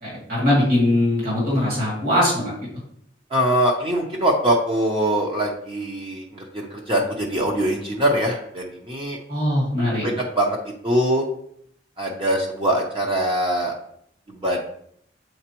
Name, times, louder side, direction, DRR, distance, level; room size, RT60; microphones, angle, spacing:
voice 1, 0.0-2.5 9.3-10.1, left 1 dB, 55° right, -6 dB, 2.4 m, -21 dB
voice 2, 3.3-9.2 10.0-10.6 10.8-11.2 12.0-13.7 14.3-14.7, right 1 dB, 30° right, -1 dB, 0.8 m, -23 dB
7.9 x 4.2 x 3.0 m, 0.68 s
head